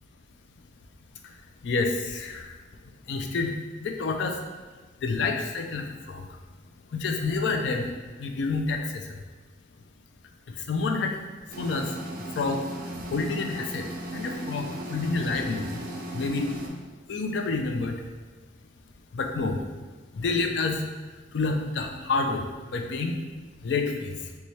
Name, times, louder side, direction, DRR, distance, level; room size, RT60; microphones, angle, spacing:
voice 1, 1.6-2.5 3.1-3.5 3.8-4.4 5.0-6.2 6.9-7.8 8.2-8.8 10.7-11.2 11.6-11.9 12.4-12.6 13.1-13.8 14.1-15.8 16.1-16.5 17.1-17.9 19.1-19.6 20.2-20.8 21.3-22.4 22.7-23.2 23.6-24.1, left 3 dB, 70° left, 4 dB, 0.4 m, -28 dB
sound 1, 11.5-16.7, right 1 dB, 50° right, 0.4 m, -37 dB
4.0 x 2.3 x 3.1 m, 1.3 s
head